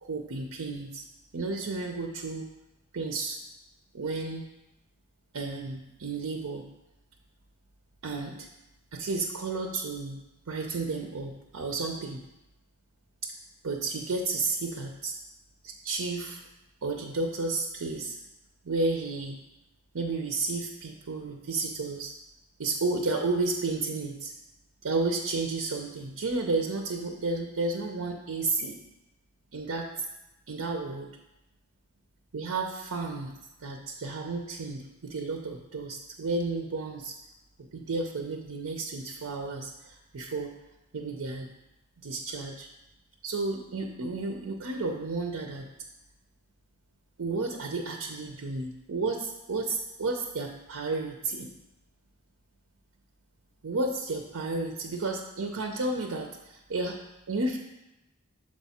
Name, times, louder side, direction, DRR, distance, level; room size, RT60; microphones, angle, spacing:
voice 1, 0.0-1.0 1.3-2.5 2.9-3.4 3.9-4.4 5.3-6.6 8.0-8.5 8.9-10.2 10.5-12.2 13.6-15.1 15.6-16.4 16.8-18.2 18.6-19.4 19.9-22.1 22.6-24.3 24.8-28.8 29.5-30.0 30.5-31.1 32.3-33.3 33.6-37.1 37.7-40.5 40.9-41.5 42.0-42.7 43.2-45.7 47.2-51.5 53.6-57.6, right 3 dB, 80° right, 3 dB, 0.6 m, -32 dB
6.5 x 4.6 x 4.2 m, 0.93 s
head